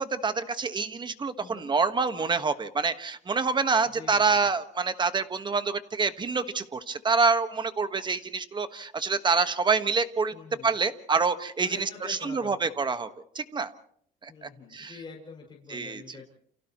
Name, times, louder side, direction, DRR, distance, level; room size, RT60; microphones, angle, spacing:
voice 1, 0.0-10.3 10.6-13.1 13.3-13.7 14.2-15.0 15.7-16.2, right 4 dB, 25° right, 10 dB, 1.5 m, -27 dB
voice 2, 1.4-1.7 3.9-4.5 10.3-10.7 11.6-12.7 14.3-16.3, left 5 dB, 30° left, -1 dB, 6.1 m, -46 dB
29.5 x 28.5 x 3.1 m, 0.64 s
cardioid pair, 110°, 17 cm